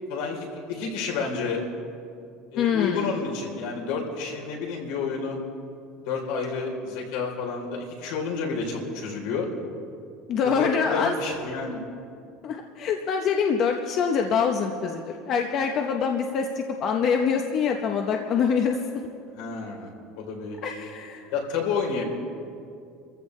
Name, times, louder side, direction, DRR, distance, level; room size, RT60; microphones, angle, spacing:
voice 1, 0.1-1.6 2.5-5.4 6.1-9.5 10.5-11.8 19.4-19.9 20.2-20.9 21.3-22.0, left 5 dB, 80° left, 0 dB, 3.5 m, -30 dB
voice 2, 2.6-3.1 10.3-11.1 11.4-11.6 12.4-19.0 20.6-21.2, left 6 dB, 40° left, 3 dB, 0.8 m, -25 dB
29.0 x 15.0 x 3.2 m, 2.5 s
cardioid pair, 160°, 0 cm